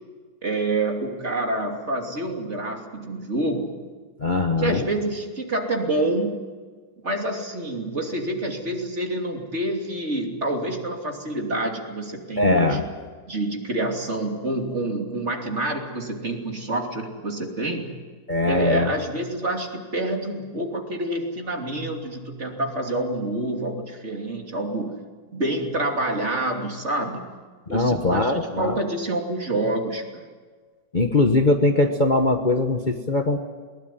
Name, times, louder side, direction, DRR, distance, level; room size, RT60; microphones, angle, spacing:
voice 1, 0.4-3.8 4.6-6.4 7.0-12.9 13.3-17.9 18.4-24.9 25.3-27.2 27.7-30.2, right 1 dB, 40° right, 2 dB, 3.2 m, -27 dB
voice 2, 4.2-4.8 12.4-12.8 18.3-18.9 27.7-28.8 30.9-33.4, left 2 dB, 30° left, 4 dB, 1.3 m, -21 dB
21.5 x 20.5 x 9.3 m, 1.5 s
omnidirectional pair, 1.9 m